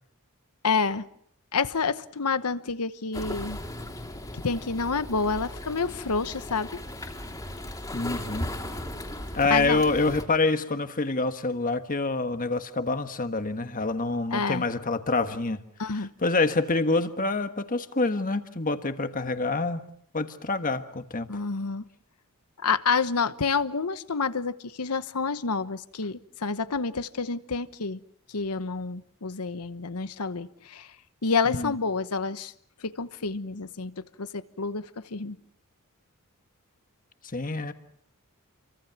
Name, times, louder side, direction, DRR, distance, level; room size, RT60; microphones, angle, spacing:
voice 1, 0.6-1.1 1.5-3.6 4.3-6.8 9.5-9.8 14.3-14.6 15.8-16.1 21.3-21.8 22.6-28.0 28.3-30.9 31.2-32.5 32.8-35.4, left 4 dB, 90° left, 13 dB, 1.1 m, -28 dB
sound 1, 3.1-10.2, left 1 dB, 15° left, 3.1 m, -37 dB
voice 2, 7.9-8.5 9.3-15.6 15.9-19.8 20.1-21.3 31.5-31.7 37.3-37.7, left 3 dB, 40° left, 9 dB, 1.5 m, -27 dB
29.5 x 24.0 x 5.9 m, 0.66 s
head